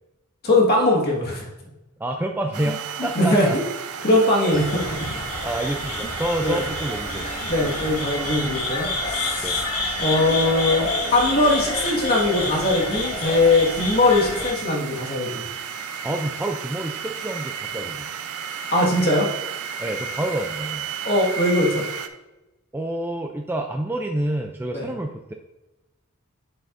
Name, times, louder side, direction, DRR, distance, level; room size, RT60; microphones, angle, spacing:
voice 1, 0.4-1.5 3.1-3.6 4.0-4.9 6.4-6.6 7.5-9.6 10.0-15.4 18.7-19.3 21.0-21.8 24.7-24.9, left 2 dB, 45° left, -3 dB, 1.6 m, -21 dB
voice 2, 2.0-3.6 4.5-4.6 5.1-7.3 9.4-9.6 16.0-18.1 19.8-20.9 22.7-25.3, right 1 dB, 10° right, 3 dB, 0.3 m, -28 dB
sound 1, 2.5-22.1, right 7 dB, 80° right, 0.6 m, -34 dB
sound 2, 4.5-14.5, left 2 dB, 65° left, 1.9 m, -29 dB
7.7 x 7.5 x 2.6 m, 1.0 s
head